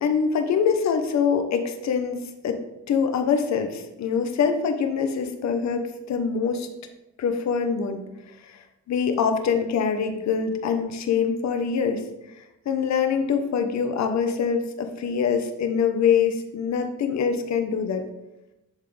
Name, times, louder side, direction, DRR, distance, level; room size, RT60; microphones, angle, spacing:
voice 1, 0.0-2.6 2.9-6.7 7.2-8.0 8.5-12.0 12.6-18.0, left 6 dB, 65° left, 6 dB, 1.0 m, -24 dB
10.5 x 3.8 x 3.4 m, 0.94 s
cardioid pair, 90°, 30 cm